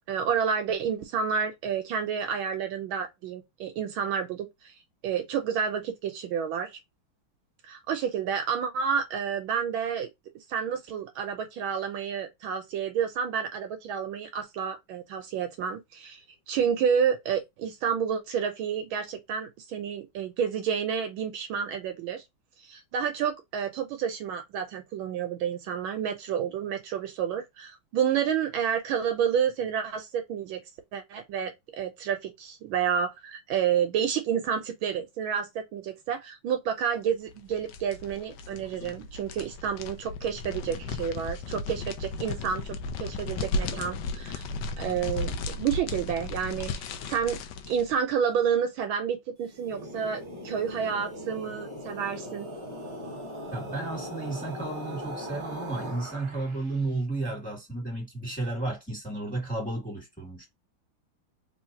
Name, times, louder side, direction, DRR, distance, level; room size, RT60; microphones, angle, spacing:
voice 1, 0.1-4.7 5.0-6.8 7.7-10.1 10.5-22.2 22.6-30.6 30.9-42.7 43.0-44.5 44.8-47.4 47.7-52.5, right 7 dB, 75° right, 1.4 m, -30 dB
sound 1, 37.3-47.9, left 3 dB, 75° left, 1.0 m, -35 dB
sound 2, 49.4-56.8, equal, 25° right, 0.7 m, -39 dB
voice 2, 53.5-60.5, right 2 dB, 5° left, 1.9 m, -33 dB
3.3 x 3.1 x 2.6 m
omnidirectional pair, 2.3 m